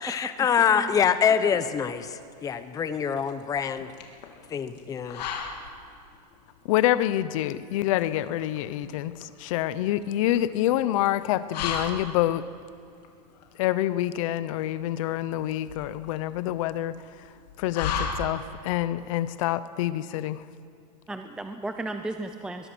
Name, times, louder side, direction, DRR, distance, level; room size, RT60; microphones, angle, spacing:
voice 1, 0.0-3.9 4.5-5.2, left 7 dB, 15° left, 11 dB, 0.9 m, -25 dB
voice 2, 0.6-0.9 21.1-22.7, right 2 dB, 5° right, 7 dB, 0.5 m, -35 dB
sound 1, 1.7-18.7, left 5 dB, 80° left, 3.3 m, -38 dB
voice 3, 6.6-12.4 13.6-17.0 17.6-20.4, left 13 dB, 50° left, 15 dB, 1.0 m, -27 dB
22.5 x 21.5 x 6.2 m, 2.4 s
supercardioid pair, 160°, 21 cm